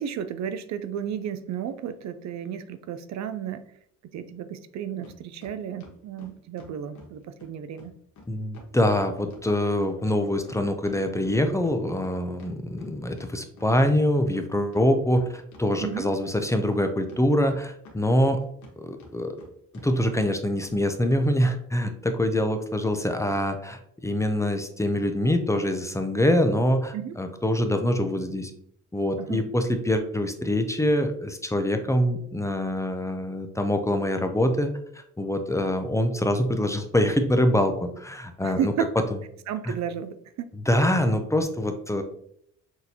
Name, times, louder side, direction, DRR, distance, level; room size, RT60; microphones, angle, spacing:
voice 1, 0.0-3.7 4.1-7.9 15.8-16.1 26.9-27.1 29.2-29.5 38.4-38.9 39.5-40.9, right 9 dB, 65° right, 11 dB, 0.5 m, -33 dB
sound 1, 5.0-5.2 5.4-7.1 7.4-7.5 7.8-8.3 8.5-11.0 11.2-14.0 14.3-14.4 14.7-15.6 15.9-16.8 17.1-18.7 19.0-19.5 19.7-19.9 20.1-20.2 20.6-20.8 21.1-21.2, left 3 dB, 70° left, 1.2 m, -49 dB
voice 2, 8.3-18.4 18.8-19.4 19.8-28.5 28.9-34.7 34.9-38.7 39.7-39.8 40.7-42.0, left 1 dB, 10° left, 7 dB, 0.5 m, -24 dB
6.2 x 2.5 x 2.8 m, 0.70 s
cardioid pair, 90°, 30 cm